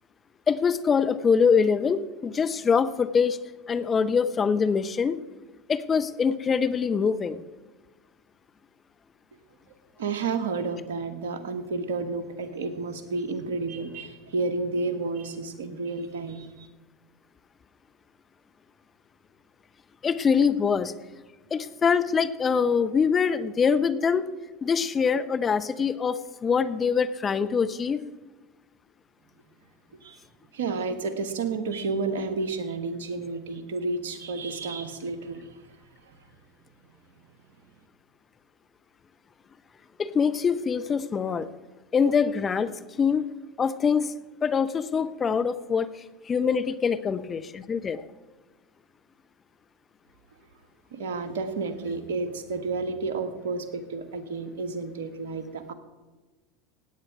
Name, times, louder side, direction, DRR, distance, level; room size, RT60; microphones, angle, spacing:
voice 1, 0.5-3.4 3.7-5.2 5.7-7.4 20.0-20.9 21.5-24.3 24.6-28.0 40.0-41.5 41.9-42.7 43.0-43.3 43.6-44.1 44.4-48.0, left 6 dB, 30° left, 12 dB, 0.7 m, -24 dB
voice 2, 10.0-16.7 30.0-30.2 30.5-35.6 50.9-55.7, right 4 dB, 75° right, 10 dB, 1.3 m, -31 dB
16.5 x 9.1 x 4.8 m, 1.2 s
hypercardioid pair, 80°, 0 cm